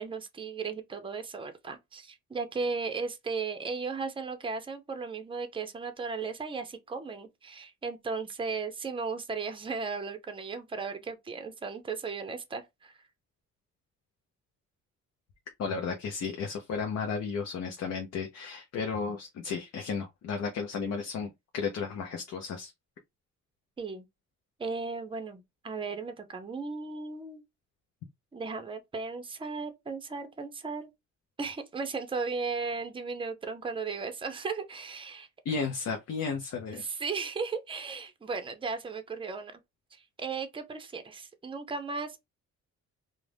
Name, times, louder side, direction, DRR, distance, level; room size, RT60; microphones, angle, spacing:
voice 1, 0.0-13.0 23.8-24.0 24.6-27.4 28.3-30.9 31.4-35.3 36.8-39.6 39.9-42.2, right 4 dB, 15° right, 0.6 m, -36 dB
voice 2, 15.6-22.7 35.4-36.8, left 5 dB, 60° left, 0.6 m, -33 dB
2.4 x 2.1 x 3.2 m
cardioid pair, 90°, 30 cm